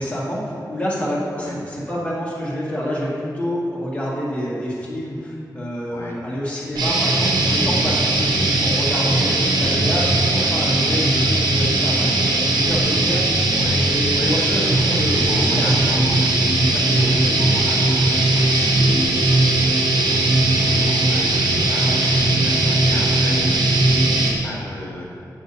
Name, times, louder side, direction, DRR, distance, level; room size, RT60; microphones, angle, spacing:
voice 1, 0.0-15.8 16.6-17.1 21.8-22.0, equal, 20° left, -7 dB, 1.9 m, -27 dB
voice 2, 5.9-6.2 10.3-10.6 13.6-14.8 15.1-25.0, left 1 dB, 40° left, -4 dB, 1.9 m, -34 dB
sound 1, 6.8-24.3, right 2 dB, 90° right, 0.9 m, -18 dB
8.1 x 7.6 x 2.7 m, 2.3 s
wide cardioid pair, 70°, 7 cm